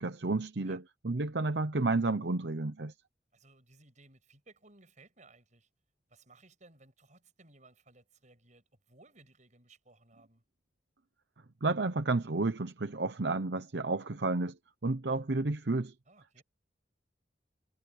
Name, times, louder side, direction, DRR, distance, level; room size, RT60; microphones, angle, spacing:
voice 1, 0.0-2.9 11.6-14.6 14.8-15.9, right 3 dB, 75° right, 0.9 m, -31 dB
voice 2, 3.3-5.7 6.1-10.4 16.1-16.4, right 2 dB, 45° right, 7.6 m, -60 dB
head